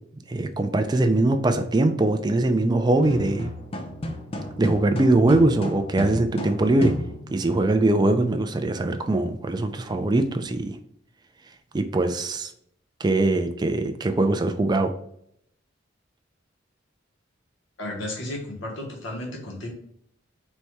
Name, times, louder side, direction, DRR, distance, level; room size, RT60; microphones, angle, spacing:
voice 1, 0.3-3.5 4.6-6.9 7.3-10.8 11.7-12.5 13.0-14.9, right 2 dB, 20° right, 7 dB, 0.4 m, -22 dB
sound 1, 2.9-7.5, left 1 dB, 30° left, 0.5 m, -33 dB
voice 2, 17.8-19.7, left 1 dB, 85° left, -1 dB, 1.1 m, -33 dB
4.1 x 2.2 x 4.6 m, 0.71 s
head